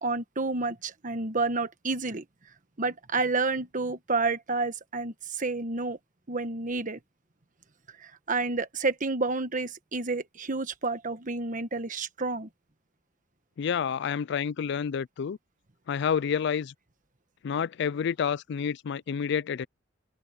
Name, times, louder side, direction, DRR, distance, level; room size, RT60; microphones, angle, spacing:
voice 1, 0.0-2.2 2.8-6.0 6.3-7.0 8.0-12.5, right 3 dB, 45° right, 1.3 m, -30 dB
voice 2, 13.6-15.4 15.9-16.7 17.4-19.7, left 7 dB, 60° left, 0.4 m, -29 dB
open air
head